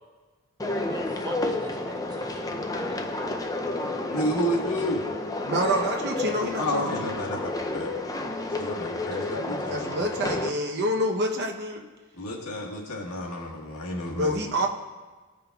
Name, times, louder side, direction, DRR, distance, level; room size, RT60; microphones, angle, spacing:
sound 1, 0.6-10.5, left 2 dB, 15° left, 0.4 m, -31 dB
voice 1, 0.7-3.4, right 1 dB, 20° right, 0 dB, 0.9 m, -41 dB
voice 2, 4.1-5.0 6.6-7.4 7.7-7.9 8.6-10.4 12.2-14.5, equal, 80° left, -2 dB, 1.5 m, -31 dB
voice 3, 5.4-7.1 9.7-11.8 14.1-14.7, equal, 50° right, 2 dB, 0.8 m, -27 dB
15.0 x 5.2 x 2.3 m, 1.3 s
head